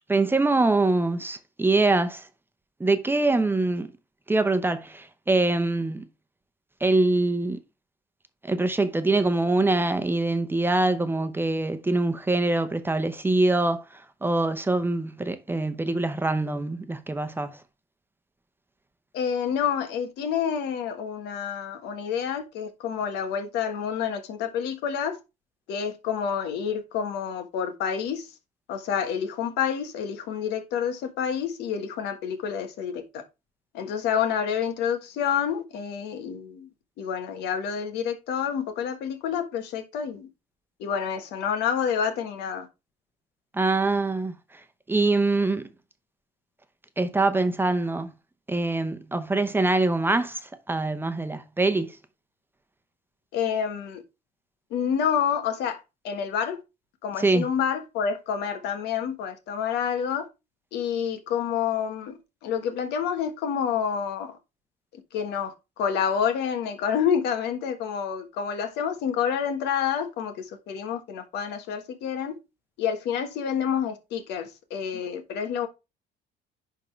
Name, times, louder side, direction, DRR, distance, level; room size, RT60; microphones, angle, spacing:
voice 1, 0.1-2.3 2.8-3.9 4.3-6.1 6.8-7.6 8.4-17.6 43.5-44.6 44.9-45.7 47.0-48.1 48.5-52.0 57.2-57.5, right 2 dB, 10° right, 0.8 m, -24 dB
voice 2, 19.1-25.2 25.7-28.3 28.7-33.2 33.7-36.7 37.0-40.3 40.8-42.7 53.3-54.0 54.7-56.6 57.0-60.3 60.7-64.4 64.9-72.4 72.8-75.7, left 7 dB, 85° left, 1.4 m, -28 dB
10.5 x 3.7 x 3.2 m
cardioid pair, 110°, 17 cm